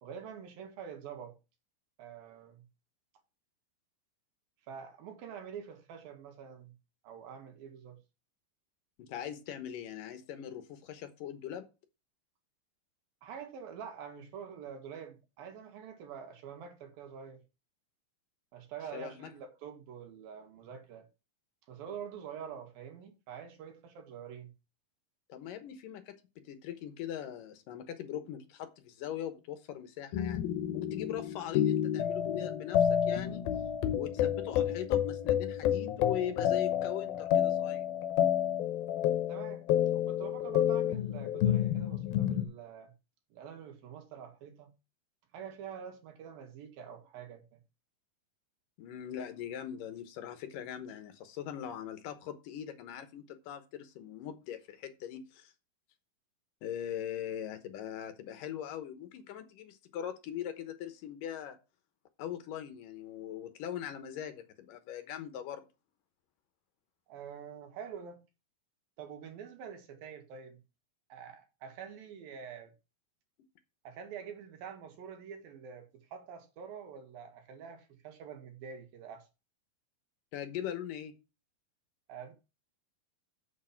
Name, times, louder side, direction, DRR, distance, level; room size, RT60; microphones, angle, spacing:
voice 1, 0.0-1.4 2.0-2.7 4.7-6.7 7.0-8.0 13.2-17.4 18.5-21.1 21.7-24.5 39.3-39.6 39.9-42.9 43.3-44.7 45.3-47.6 67.1-68.2 69.0-70.6 71.1-72.7 73.9-79.3 82.1-82.3, right 7 dB, 80° right, 3.5 m, -46 dB
voice 2, 9.0-11.7 18.9-19.3 25.3-30.4 30.7-33.5 33.9-37.9 48.8-55.5 56.6-61.6 62.2-65.7 80.3-81.1, left 10 dB, 70° left, 2.6 m, -41 dB
sound 1, 30.1-42.5, left 10 dB, 85° left, 2.8 m, -29 dB
7.4 x 6.9 x 5.7 m
omnidirectional pair, 4.1 m